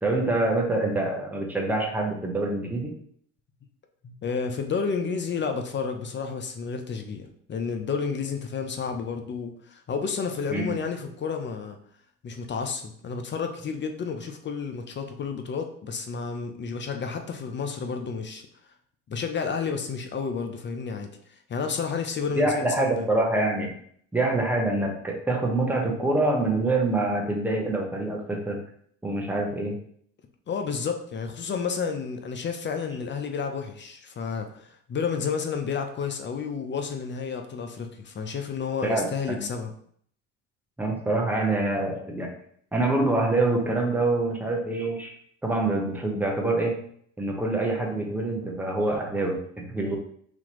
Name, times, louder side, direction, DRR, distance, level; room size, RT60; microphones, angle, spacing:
voice 1, 0.0-2.9 10.5-10.7 22.4-23.7 24.1-28.6 29.0-29.8 38.8-39.4 40.8-42.3 42.7-45.1 45.4-46.9 47.2-50.0, right 2 dB, 5° right, 0 dB, 0.9 m, -25 dB
voice 2, 4.0-11.8 12.2-18.4 19.1-23.1 30.5-39.7, left 5 dB, 30° left, 5 dB, 0.6 m, -31 dB
4.1 x 2.8 x 3.0 m, 0.63 s
supercardioid pair, 80°, 38 cm